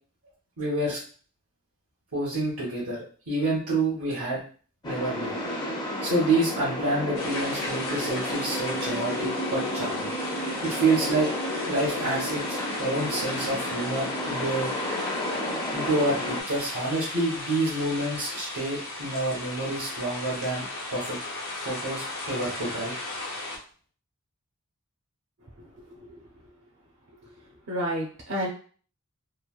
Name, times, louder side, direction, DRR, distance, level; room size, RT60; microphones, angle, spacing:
voice 1, 0.6-1.0 2.1-4.4 4.8-5.3 6.0-10.1 10.6-14.7 15.7-20.7 20.9-21.2 21.6-22.9, right 2 dB, 85° right, -7 dB, 1.0 m, -28 dB
sound 1, 4.8-16.4, left 1 dB, 20° left, 0.4 m, -31 dB
sound 2, 7.2-23.6, left 2 dB, 70° left, 0.7 m, -36 dB
voice 2, 25.6-26.3 27.2-27.3 27.7-28.5, equal, 60° right, -2 dB, 0.5 m, -32 dB
3.0 x 2.1 x 2.3 m, 0.41 s
head